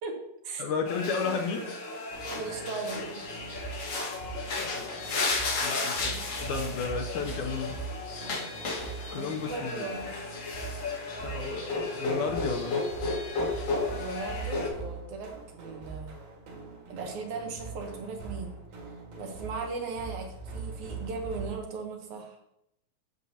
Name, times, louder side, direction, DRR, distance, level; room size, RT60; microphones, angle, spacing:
voice 1, 0.0-0.6 1.2-1.3 2.3-3.2 9.1-10.1 13.9-16.2 16.9-18.6 19.2-22.4, right 4 dB, 65° right, 2 dB, 2.3 m, -38 dB
voice 2, 0.6-1.7 4.6-5.0 5.3-7.8 9.1-9.9 11.2-12.8, left 5 dB, 75° left, 3 dB, 2.0 m, -33 dB
sound 1, 0.9-14.7, left 3 dB, 50° left, 2.6 m, -34 dB
sound 2, 2.1-21.6, right 5 dB, 90° right, 4.0 m, -42 dB
11.0 x 7.3 x 2.8 m, 0.80 s
omnidirectional pair, 3.9 m